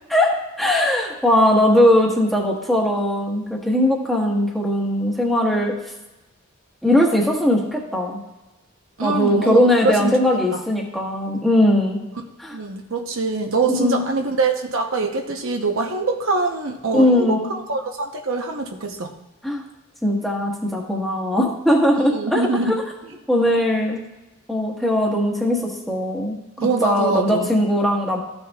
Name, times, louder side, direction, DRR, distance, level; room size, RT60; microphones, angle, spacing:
voice 1, 0.1-5.7 6.8-8.2 9.0-12.0 12.4-12.6 13.7-14.0 16.9-17.5 19.4-19.6 20.0-22.7 23.3-24.0 24.5-26.4 26.8-28.2, left 1 dB, ahead, -2 dB, 1.3 m, -19 dB
voice 2, 9.0-10.2 10.5-10.6 12.5-19.1 22.0-22.8 26.6-27.6, right 3 dB, 65° right, 3 dB, 0.8 m, -24 dB
14.0 x 6.9 x 2.3 m, 1.1 s
head